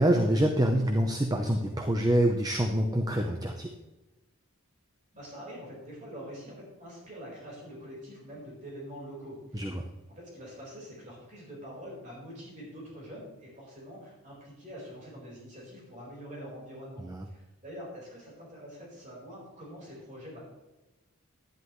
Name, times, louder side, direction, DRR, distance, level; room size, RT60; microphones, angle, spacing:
voice 1, 0.0-3.7 9.5-9.8 17.1-17.2, right 1 dB, 15° right, 3 dB, 0.7 m, -26 dB
voice 2, 5.1-9.8 10.1-20.4, equal, 35° right, -4 dB, 4.4 m, -45 dB
12.0 x 11.0 x 3.1 m, 1.1 s
head